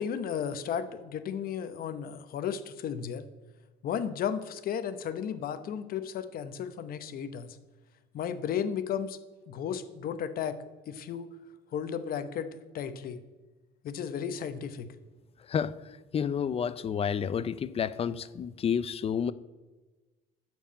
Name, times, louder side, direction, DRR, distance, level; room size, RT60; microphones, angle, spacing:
voice 1, 0.0-3.2 3.8-7.6 8.1-9.2 9.5-10.6 10.9-11.3 11.7-12.5 12.7-13.2 13.8-14.9, left 8 dB, 60° left, 11 dB, 0.9 m, -34 dB
voice 2, 16.1-19.3, left 7 dB, 35° left, 16 dB, 0.5 m, -30 dB
12.5 x 4.7 x 8.5 m, 1.2 s
cardioid pair, 110°, 17 cm